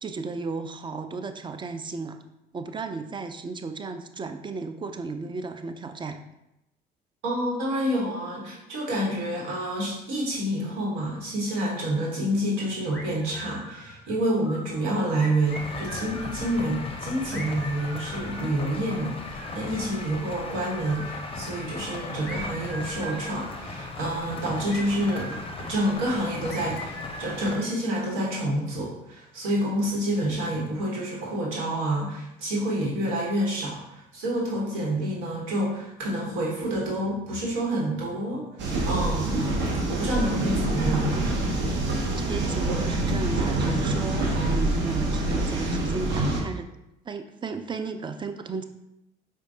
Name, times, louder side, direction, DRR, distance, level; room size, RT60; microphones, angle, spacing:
voice 1, 0.0-2.2 2.5-6.2 42.2-46.7 47.1-48.6, right 4 dB, 25° right, 7 dB, 0.4 m, -34 dB
voice 2, 7.2-25.4 25.7-39.4 39.9-41.0, right 1 dB, 80° right, -4 dB, 1.2 m, -28 dB
sound 1, 12.9-14.1 14.4-16.5 17.3-20.4 20.7-21.5 22.2-25.6 26.5-28.3, right 1 dB, 5° left, 1.0 m, -42 dB
sound 2, 15.5-27.6, left 3 dB, 25° left, 0.5 m, -37 dB
sound 3, 38.6-46.4, right 2 dB, 65° right, 0.8 m, -26 dB
4.5 x 2.2 x 2.7 m, 0.87 s
hypercardioid pair, 60°, 20 cm